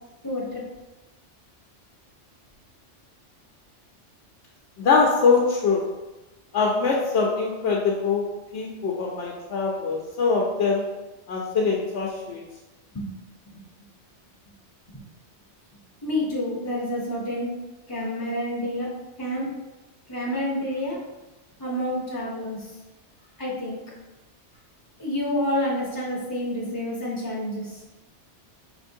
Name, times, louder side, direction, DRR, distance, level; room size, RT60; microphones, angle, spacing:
voice 1, 0.2-0.6 12.9-13.1 13.5-13.6 14.9-15.0 16.0-17.5 17.9-18.9 19.2-19.5 20.1-21.0 21.6-22.8 23.4-23.8 25.0-27.8, left 1 dB, 25° left, -5 dB, 0.6 m, -28 dB
voice 2, 4.8-5.9 6.5-8.2 8.5-10.9 11.3-12.4, left 4 dB, 70° left, -2 dB, 0.8 m, -23 dB
4.3 x 3.0 x 2.6 m, 1.1 s
omnidirectional pair, 1.2 m